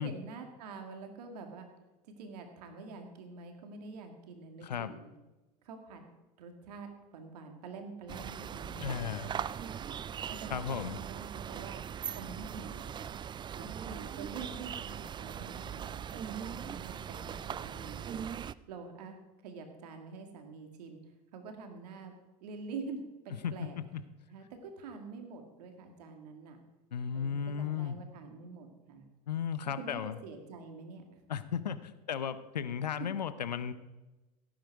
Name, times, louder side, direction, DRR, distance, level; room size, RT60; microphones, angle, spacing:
voice 1, 0.0-1.7 2.0-5.1 5.6-6.0 6.4-9.3 9.6-10.0 10.3-11.8 12.1-13.1 13.5-21.0 21.3-22.1 22.4-23.8 24.3-26.6 27.1-29.1 29.8-31.0 33.0-33.2, right 4 dB, 70° right, 5 dB, 2.2 m, -46 dB
sound 1, 8.1-18.5, right 8 dB, 20° right, 0.4 m, -40 dB
voice 2, 8.8-9.3 10.5-11.0 23.4-23.8 26.9-28.0 29.3-30.2 31.3-33.7, left 8 dB, 85° left, 14 dB, 0.8 m, -35 dB
16.5 x 9.0 x 4.7 m, 1.1 s
hypercardioid pair, 80°, 21 cm